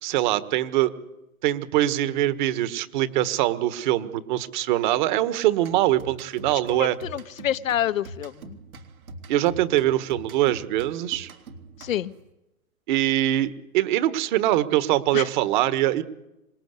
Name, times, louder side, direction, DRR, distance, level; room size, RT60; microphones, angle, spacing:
voice 1, 0.0-0.9 1.4-7.0 9.3-11.3 12.9-16.0, right 14 dB, 35° right, 12 dB, 1.5 m, -23 dB
sound 1, 5.6-12.3, right 3 dB, 80° right, 3.6 m, -44 dB
voice 2, 6.7-8.6 11.8-12.1 15.1-15.3, left 11 dB, 65° left, 14 dB, 1.0 m, -28 dB
26.0 x 20.5 x 8.3 m, 0.92 s
hypercardioid pair, 150°, 42 cm